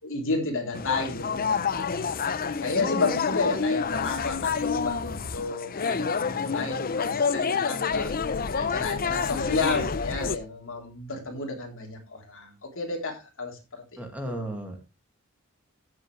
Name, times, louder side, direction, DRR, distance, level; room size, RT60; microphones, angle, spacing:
voice 1, 0.0-2.1 2.6-8.1 8.6-14.4, left 3 dB, 60° left, 2 dB, 3.6 m, -32 dB
sound 1, 0.7-10.4, left 5 dB, 40° left, 0.6 m, -28 dB
voice 2, 14.0-14.9, right 1 dB, 5° right, 3 dB, 2.2 m, -35 dB
15.0 x 7.5 x 3.3 m, 0.27 s
head